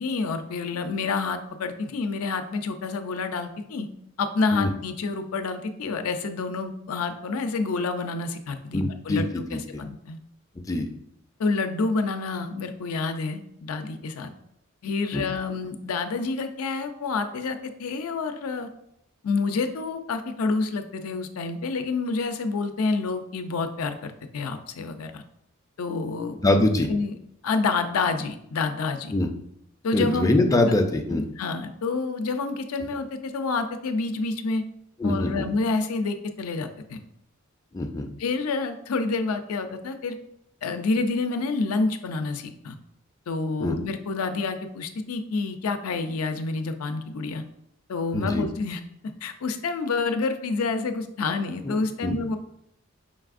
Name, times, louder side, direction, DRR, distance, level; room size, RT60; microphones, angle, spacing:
voice 1, 0.0-3.9 4.2-10.2 11.4-14.3 14.8-18.7 19.2-25.2 25.8-26.6 26.9-27.1 27.4-29.1 29.8-30.3 30.6-30.7 31.1-34.6 35.0-37.0 38.2-40.2 40.6-42.8 43.3-47.4 47.9-48.8 49.2-52.4, left 3 dB, 85° left, 7 dB, 0.4 m, -28 dB
voice 2, 8.7-9.6 10.6-10.9 15.1-15.2 26.4-26.9 29.1-29.3 29.9-31.2 35.0-35.5 37.7-38.1 43.6-43.8 48.1-48.5 51.6-51.8 52.0-52.4, left 2 dB, 15° left, 4 dB, 0.3 m, -23 dB
5.2 x 3.3 x 2.4 m, 0.76 s
head